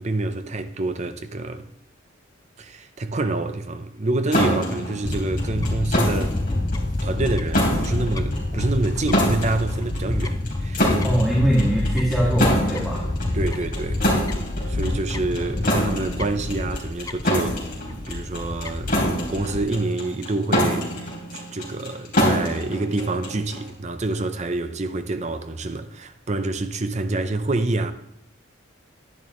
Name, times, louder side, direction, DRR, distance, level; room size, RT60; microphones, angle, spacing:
voice 1, 0.0-1.6 2.6-6.4 7.0-11.0 13.3-14.1 14.7-27.9, right 2 dB, 35° right, 0.6 m, -27 dB
sound 1, 4.3-23.7, equal, 45° left, 3.4 m, -26 dB
Fowl / Bird, 5.1-19.7, left 2 dB, 15° left, 0.3 m, -28 dB
voice 2, 11.0-13.1, equal, ahead, 1.9 m, -22 dB
11.0 x 10.5 x 3.1 m
head